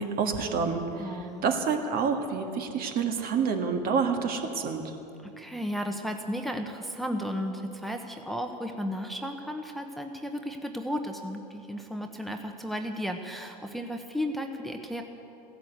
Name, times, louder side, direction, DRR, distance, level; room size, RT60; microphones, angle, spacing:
voice 1, 0.0-4.8, right 5 dB, 45° right, 5 dB, 1.8 m, -28 dB
voice 2, 1.0-1.4 5.2-15.0, equal, ahead, 4 dB, 1.1 m, -34 dB
15.0 x 11.5 x 8.1 m, 2.8 s
hypercardioid pair, 95°, 21 cm